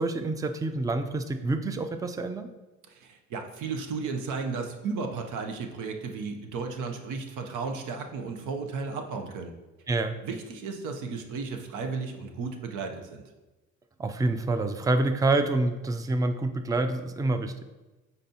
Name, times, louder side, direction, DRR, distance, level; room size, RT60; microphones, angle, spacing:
voice 1, 0.0-2.5 9.9-10.1 14.0-17.5, right 2 dB, 10° right, 8 dB, 0.4 m, -27 dB
voice 2, 2.9-9.5 10.2-13.2, right 4 dB, 90° right, 5 dB, 0.8 m, -34 dB
9.1 x 4.1 x 2.9 m, 1.1 s
cardioid pair, 90°, 30 cm